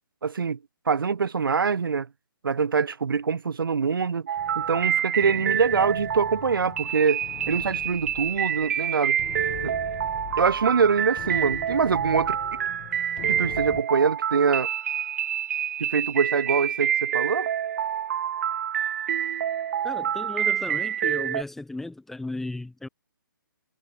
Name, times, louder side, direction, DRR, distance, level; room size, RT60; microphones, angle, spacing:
voice 1, 0.2-0.6 0.9-2.1 2.4-4.3 4.6-9.2 9.6-9.7 10.4-12.4 13.3-14.7 15.8-17.5, right 5 dB, 80° right, 2.2 m, -24 dB
sound 1, 4.3-21.4, right 9 dB, 45° right, 2.3 m, -27 dB
sound 2, 4.4-13.8, left 23 dB, 25° left, 7.3 m, -42 dB
voice 2, 19.8-22.9, left 2 dB, 5° left, 3.1 m, -35 dB
hypercardioid pair, 160°, 11 cm